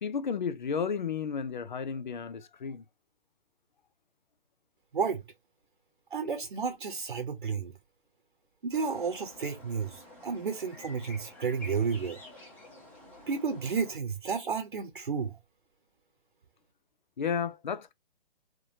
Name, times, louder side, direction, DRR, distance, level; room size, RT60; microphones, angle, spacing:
voice 1, 0.0-2.8 17.2-17.9, left 6 dB, 50° left, 0.6 m, -33 dB
voice 2, 6.1-7.7 8.6-12.2 13.3-15.4, right 5 dB, 60° right, 0.9 m, -32 dB
sound 1, 8.7-14.0, left 1 dB, 5° left, 0.9 m, -50 dB
3.7 x 3.2 x 2.8 m
figure-of-eight pair, 135°, 30 cm